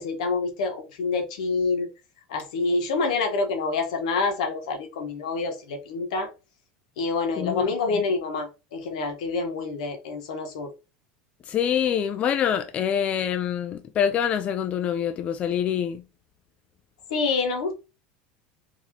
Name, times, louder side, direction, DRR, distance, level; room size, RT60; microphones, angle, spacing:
voice 1, 0.0-1.9 2.3-6.3 7.0-10.7 17.1-17.7, left 4 dB, 85° left, 1.1 m, -27 dB
voice 2, 7.4-7.7 11.5-16.0, left 9 dB, 35° left, 0.4 m, -25 dB
4.0 x 2.7 x 2.9 m
supercardioid pair, 120°, 4 cm